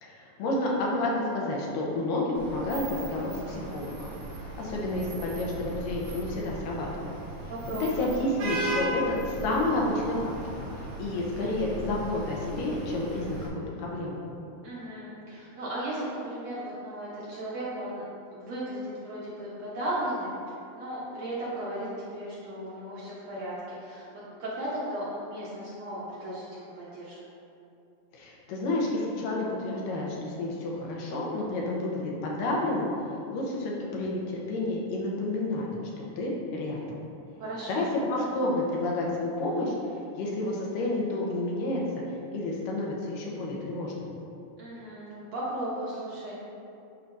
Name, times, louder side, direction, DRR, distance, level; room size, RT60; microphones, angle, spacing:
voice 1, 0.0-4.1 4.6-7.1 7.4-14.2 28.1-32.9 33.3-35.7 36.2-37.0 37.7-39.7 40.2-41.8 42.3-44.1, left 2 dB, 75° left, -3 dB, 2.5 m, -30 dB
Vehicle horn car horn honking / Traffic noise roadway noise, 2.4-13.5, right 1 dB, 85° right, 3.2 m, -37 dB
voice 2, 7.5-8.1 14.6-18.0 18.3-20.3 20.8-27.2 37.4-37.9 44.6-46.4, right 1 dB, 60° right, -8 dB, 1.9 m, -36 dB
10.5 x 4.8 x 2.7 m, 2.7 s
omnidirectional pair, 4.0 m